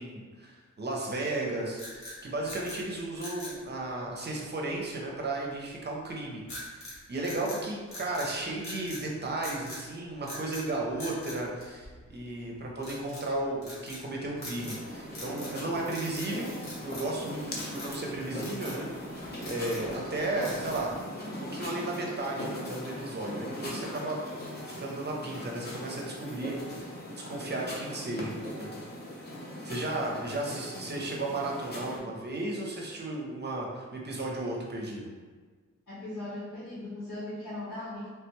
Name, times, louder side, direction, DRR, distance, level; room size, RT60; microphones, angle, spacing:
voice 1, 0.0-6.8 7.1-17.4 17.7-18.9 19.1-20.9 21.5-24.2 24.7-28.7 29.1-29.3 29.6-35.1, right 2 dB, 35° right, -2 dB, 0.5 m, -34 dB
sound 1, 1.7-2.8 3.2-3.6 6.5-7.0 7.2-8.3 8.6-9.0 9.4-9.8 10.2-10.7 11.0-12.2 12.8-13.3 13.6-14.0 14.4-14.8 15.1-15.6 15.8-16.3 16.6-17.2 17.5-17.9 18.4-18.8 19.2-19.9 20.4-20.9, left 1 dB, 65° left, 1.2 m, -43 dB
sound 2, 14.6-32.0, equal, 35° left, 0.6 m, -40 dB
voice 2, 35.9-38.1, left 1 dB, 90° left, -9 dB, 1.4 m, -38 dB
3.3 x 2.2 x 2.9 m, 1.5 s
wide cardioid pair, 170°, 30 cm